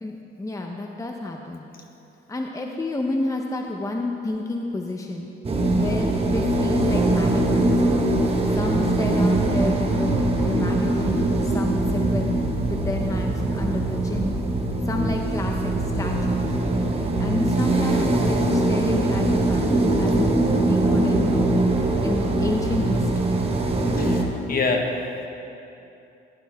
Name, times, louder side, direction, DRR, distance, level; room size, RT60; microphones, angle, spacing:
voice 1, 0.0-1.6 2.3-5.3 5.7-7.7 8.5-12.3 12.7-14.4 14.9-16.5 17.2-20.3 20.7-21.3 22.0-23.4, left 2 dB, 15° left, 2 dB, 0.9 m, -30 dB
sound 1, 5.4-24.2, right 2 dB, 30° right, 1.4 m, -22 dB
voice 2, 24.0-25.3, left 3 dB, 45° left, 2 dB, 1.6 m, -26 dB
15.5 x 11.5 x 3.6 m, 2.8 s
cardioid pair, 90°, 20 cm